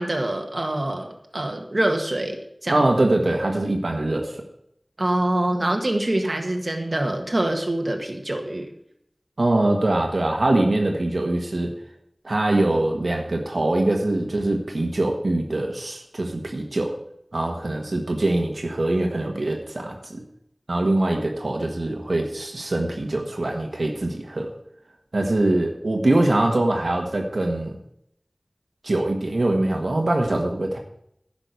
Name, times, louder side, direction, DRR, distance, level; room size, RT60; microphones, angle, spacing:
voice 1, 0.0-2.9 5.0-8.7, right 1 dB, 55° right, 3 dB, 1.7 m, -25 dB
voice 2, 2.7-4.4 9.4-11.7 12.2-16.9 17.3-20.2 20.7-24.5 25.1-27.8 28.8-30.8, right 2 dB, 90° right, 2 dB, 1.5 m, -23 dB
10.5 x 6.1 x 8.1 m, 0.75 s
wide cardioid pair, 50°, 0 cm